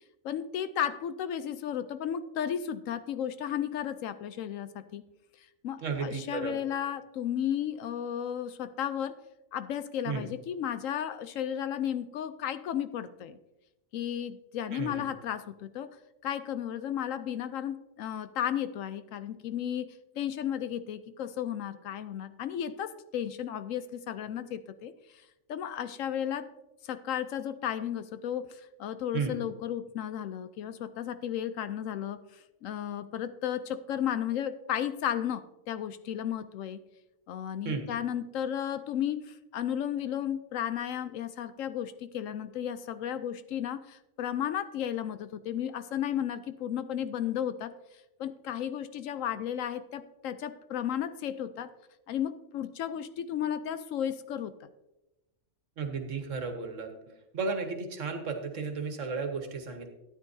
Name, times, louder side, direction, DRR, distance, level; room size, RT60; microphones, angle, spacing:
voice 1, 0.2-5.0 5.6-9.2 9.5-13.4 13.9-15.9 16.2-19.9 20.2-24.9 25.5-26.5 26.8-36.8 37.3-47.7 48.2-51.7 52.1-54.7, left 10 dB, 75° left, 12 dB, 0.9 m, -34 dB
voice 2, 5.8-6.5 10.0-10.2 14.7-15.1 29.1-29.4 37.6-37.9 55.8-56.9 57.3-59.9, right 4 dB, 65° right, 5 dB, 1.5 m, -33 dB
13.0 x 9.6 x 2.7 m, 0.95 s
omnidirectional pair, 1.4 m